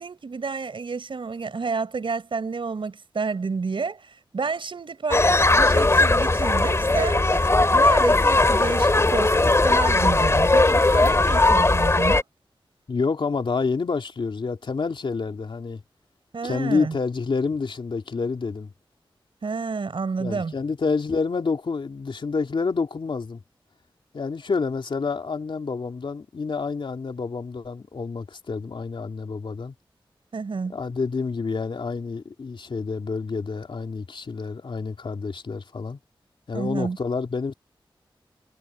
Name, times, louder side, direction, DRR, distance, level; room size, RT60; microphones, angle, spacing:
voice 1, 0.0-4.0 4.3-12.2 16.3-17.0 19.4-20.5 30.3-30.8 36.5-37.0, right 4 dB, 70° right, 5.5 m, -30 dB
sound 1, 5.1-12.2, left 2 dB, 30° left, 2.9 m, -18 dB
voice 2, 12.9-15.8 16.4-18.7 20.2-23.4 24.1-29.7 30.7-36.0 36.5-37.5, left 4 dB, 70° left, 3.3 m, -28 dB
wide cardioid pair, 80°, 9 cm